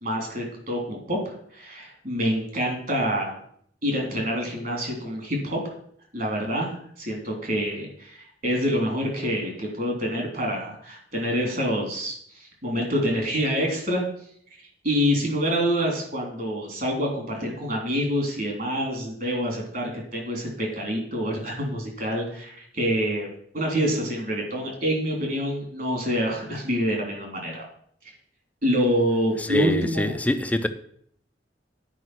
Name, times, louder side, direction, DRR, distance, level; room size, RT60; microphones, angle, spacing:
voice 1, 0.0-3.4 3.8-5.7 6.1-14.0 14.8-23.3 23.5-27.6 28.6-30.2, equal, 50° right, 3.5 m, -26 dB
voice 2, 29.4-30.7, left 1 dB, 10° left, 0.6 m, -25 dB
9.8 x 5.2 x 6.2 m
head